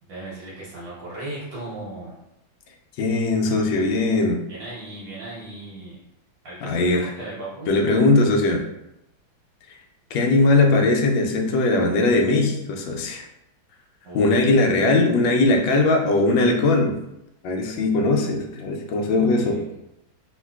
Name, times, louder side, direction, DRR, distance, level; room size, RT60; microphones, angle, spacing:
voice 1, 0.0-2.2 4.5-6.0 6.4-7.7 14.0-14.3 19.2-19.6, right 2 dB, 70° right, -7 dB, 1.5 m, -37 dB
voice 2, 3.0-4.4 6.6-7.1 7.7-8.6 9.7-9.8 10.1-13.3 14.1-16.9 17.4-19.6, left 2 dB, 75° left, 2 dB, 1.3 m, -20 dB
3.1 x 2.8 x 2.3 m, 0.87 s
omnidirectional pair, 2.2 m